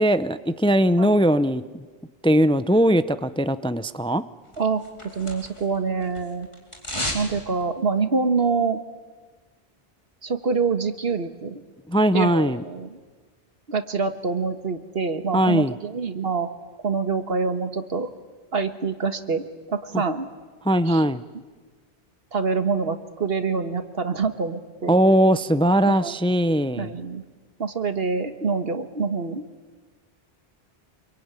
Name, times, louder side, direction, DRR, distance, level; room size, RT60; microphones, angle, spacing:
voice 1, 0.0-1.8 2.2-4.2 11.9-12.6 15.3-15.7 19.9-20.0 20.6-21.2 24.9-26.9, equal, 5° left, 13 dB, 0.6 m, -20 dB
sound 1, 4.5-5.8 6.0-7.3 7.6-7.7, left 1 dB, 30° left, 4.4 m, -32 dB
voice 2, 5.1-6.5 7.1-8.8 10.2-11.6 12.1-13.0 13.7-16.5 16.8-18.1 18.5-20.3 20.9-21.0 22.3-25.0 25.8-26.1 26.8-27.2 27.6-29.4, right 4 dB, 70° right, 9 dB, 1.8 m, -26 dB
27.0 x 22.5 x 9.8 m, 1.4 s
omnidirectional pair, 1.0 m